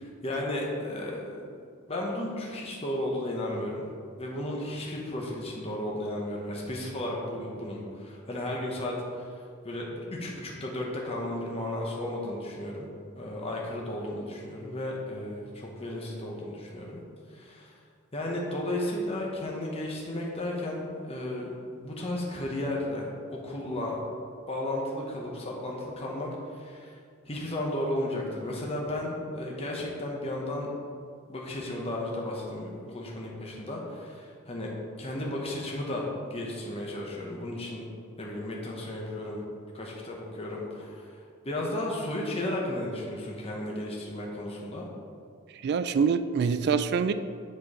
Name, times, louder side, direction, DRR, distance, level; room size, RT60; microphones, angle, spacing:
voice 1, 0.2-1.4 1.9-3.9 4.2-9.3 9.6-12.9 13.1-17.0 17.3-17.8 18.1-21.5 21.8-24.0 24.5-26.9 27.2-30.7 31.3-34.7 35.0-37.8 38.2-39.4 39.7-41.1 41.4-44.8, left 1 dB, 30° left, -2 dB, 0.9 m, -34 dB
voice 2, 45.6-47.1, right 6 dB, 50° right, 11 dB, 0.3 m, -25 dB
7.6 x 4.5 x 4.8 m, 2.2 s
head